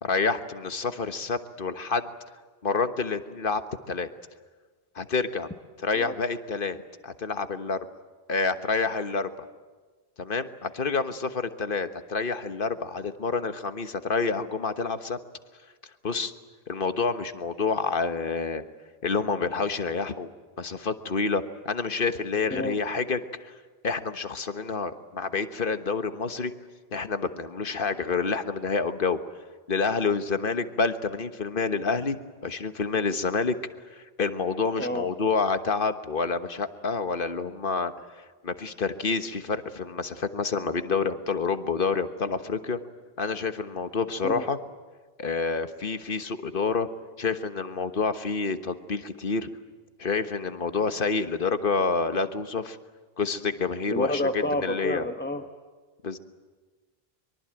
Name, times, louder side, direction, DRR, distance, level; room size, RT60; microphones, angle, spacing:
voice 1, 0.0-2.1 2.6-3.6 3.9-4.1 4.9-5.5 5.8-6.8 7.0-7.8 8.3-9.3 10.2-15.2 16.0-16.3 16.7-18.6 19.0-20.3 20.6-23.5 23.8-26.5 26.9-29.2 29.7-33.5 33.9-37.9 38.4-42.8 43.2-44.6 45.2-46.9 47.2-49.5 50.0-52.8 53.2-55.1 56.0-56.2, left 4 dB, 55° left, 9 dB, 1.5 m, -28 dB
voice 2, 53.9-55.4, left 1 dB, 10° left, 6 dB, 1.1 m, -29 dB
24.5 x 23.0 x 9.0 m, 1.4 s
omnidirectional pair, 1.1 m